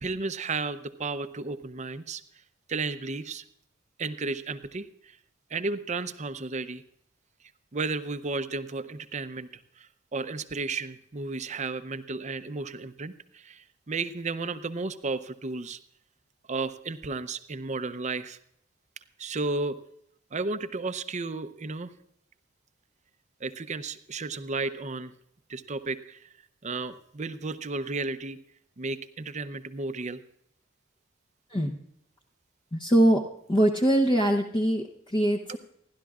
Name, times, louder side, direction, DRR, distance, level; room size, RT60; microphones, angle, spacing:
voice 1, 0.0-2.2 2.7-3.4 4.0-5.2 5.5-6.8 7.7-9.5 9.8-15.8 16.5-18.4 19.2-19.8 20.3-21.9 23.4-25.1 25.5-26.3 26.6-28.4 28.8-30.2, right 3 dB, 35° right, 12 dB, 0.6 m, -33 dB
voice 2, 32.7-33.2 33.5-35.6, right 1 dB, 25° left, 1 dB, 0.8 m, -23 dB
28.5 x 11.5 x 2.4 m, 0.75 s
head